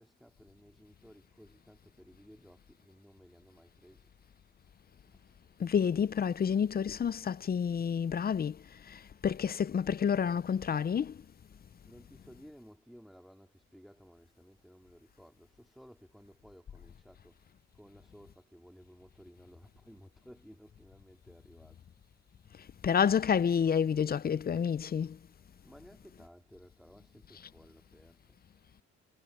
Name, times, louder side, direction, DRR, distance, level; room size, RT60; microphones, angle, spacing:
voice 1, 0.0-4.1 5.1-5.4 11.9-21.8 25.6-28.4, equal, ahead, 3.5 m, -57 dB
voice 2, 5.6-8.6 9.2-11.1 22.8-25.2, left 7 dB, 30° left, 0.5 m, -29 dB
cardioid pair, 90°, 30 cm